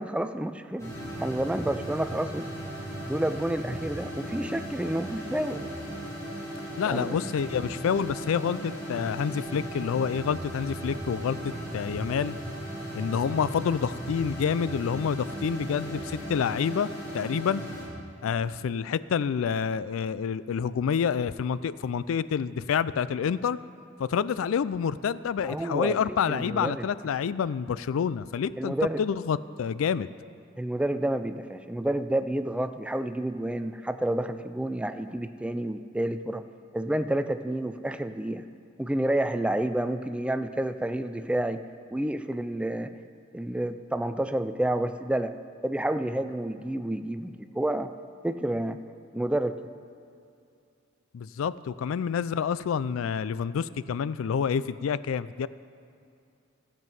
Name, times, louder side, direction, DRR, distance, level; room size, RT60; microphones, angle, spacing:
voice 1, 0.0-2.5 3.1-5.7 6.9-7.2 25.4-26.0 26.3-26.9 28.6-29.0 30.6-36.4 36.7-38.4 38.8-41.6 41.9-42.9 43.3-45.3 45.6-47.9 48.2-48.8 49.1-49.6, right 1 dB, 5° right, 10 dB, 0.3 m, -29 dB
sound 1, 0.8-17.8, equal, 15° left, 2.8 m, -37 dB
voice 2, 6.8-12.4 12.9-17.6 18.2-23.6 24.0-30.1 51.1-55.5, left 7 dB, 75° left, 17 dB, 0.3 m, -28 dB
15.0 x 7.6 x 5.4 m, 2.5 s
head